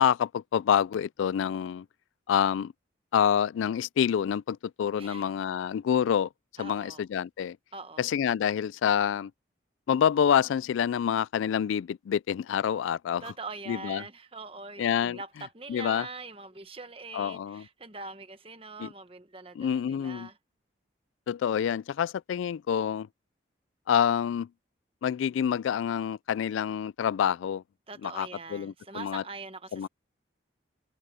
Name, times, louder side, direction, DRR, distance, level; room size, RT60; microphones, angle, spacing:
voice 1, 0.0-1.9 2.3-2.7 3.1-6.3 6.6-7.6 8.0-9.3 9.9-13.3 13.7-14.0 14.8-15.2 15.7-16.1 17.1-17.7 18.8-18.9 19.6-20.3 21.3-23.1 23.9-24.5 25.0-27.6 28.0-29.2 29.7-29.9, left 8 dB, 85° left, 0.3 m, -27 dB
voice 2, 6.6-7.0 7.7-8.1 13.2-20.3 27.9-29.9, right 3 dB, 30° right, 1.2 m, -43 dB
head